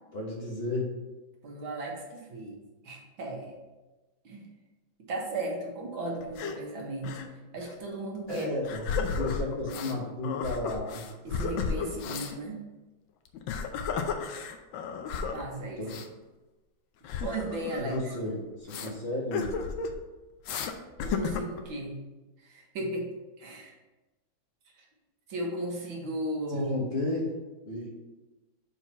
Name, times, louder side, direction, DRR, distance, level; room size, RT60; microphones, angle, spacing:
voice 1, 0.1-0.9 8.3-11.0 11.9-12.1 15.8-15.9 17.8-19.5 26.5-27.3 27.6-27.9, left 2 dB, 35° left, -3 dB, 1.3 m, -33 dB
voice 2, 1.4-2.6 2.8-3.6 4.3-4.4 5.1-7.2 7.5-8.5 9.7-9.9 11.2-12.6 15.3-15.9 17.2-18.1 21.0-22.0 22.4-23.1 23.4-23.7 25.3-26.8, right 2 dB, 85° right, -1 dB, 2.2 m, -35 dB
sound 1, 6.2-6.6 7.0-7.3 7.6-7.7 8.3-10.0 10.2-12.4 13.3-15.4 15.8-16.1 17.0-18.2 18.7-18.9 19.3-20.0 20.5-20.7 21.0-21.6, left 5 dB, 80° left, 1.4 m, -33 dB
5.5 x 4.6 x 5.6 m, 1.1 s
omnidirectional pair, 2.1 m